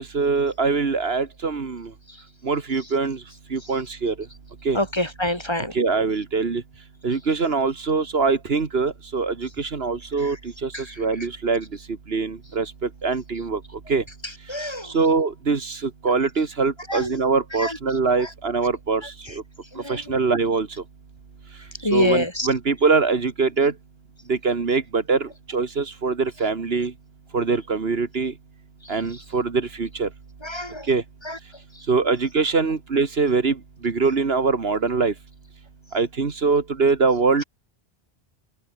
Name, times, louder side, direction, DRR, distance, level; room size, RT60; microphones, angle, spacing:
voice 1, 0.0-1.9 2.4-4.3 4.6-4.8 5.7-6.6 7.0-14.1 14.4-19.4 19.8-20.8 21.5-23.8 24.3-26.9 27.3-28.4 28.9-30.1 30.8-31.0 31.9-35.2 35.9-37.4, right 4 dB, 65° right, 1.9 m, -23 dB
voice 2, 4.7-5.7 10.7-10.9 14.5-14.9 16.9-17.1 17.6-17.8 18.2-18.3 19.7-20.0 21.8-22.5 30.4-30.9 31.2-31.4, left 1 dB, 25° left, 3.1 m, -25 dB
omnidirectional pair, 1.1 m